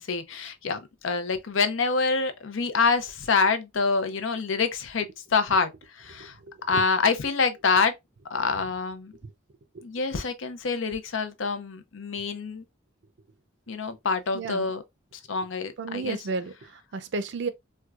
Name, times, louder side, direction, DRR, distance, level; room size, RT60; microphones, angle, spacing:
voice 1, 0.0-6.4 6.7-7.9 8.3-9.1 9.8-12.6 13.7-14.8 15.3-16.2, left 4 dB, 70° left, 0.6 m, -26 dB
voice 2, 14.3-14.7 15.8-17.5, right 4 dB, 60° right, 0.5 m, -32 dB
4.5 x 2.2 x 2.3 m
head